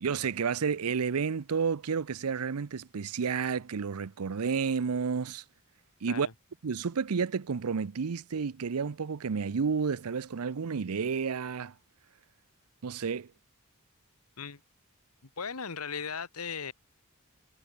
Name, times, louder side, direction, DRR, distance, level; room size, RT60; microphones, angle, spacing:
voice 1, 0.0-5.4 6.0-6.3 6.6-11.7 12.8-13.3, right 5 dB, 85° right, 0.6 m, -31 dB
voice 2, 15.4-16.7, left 6 dB, 90° left, 1.6 m, -37 dB
head